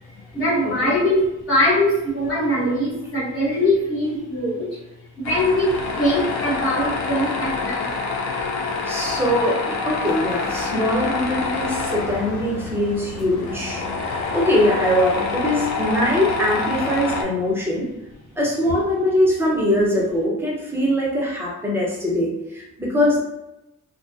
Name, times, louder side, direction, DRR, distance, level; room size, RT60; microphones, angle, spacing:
voice 1, 0.3-4.8 5.2-7.9, left 1 dB, 40° left, -8 dB, 1.2 m, -22 dB
Tools, 5.2-17.2, left 4 dB, 65° left, 0.5 m, -27 dB
voice 2, 8.8-17.9 18.4-23.2, left 1 dB, 10° right, -4 dB, 0.8 m, -22 dB
2.3 x 2.1 x 2.6 m, 0.92 s
cardioid pair, 90°, 30 cm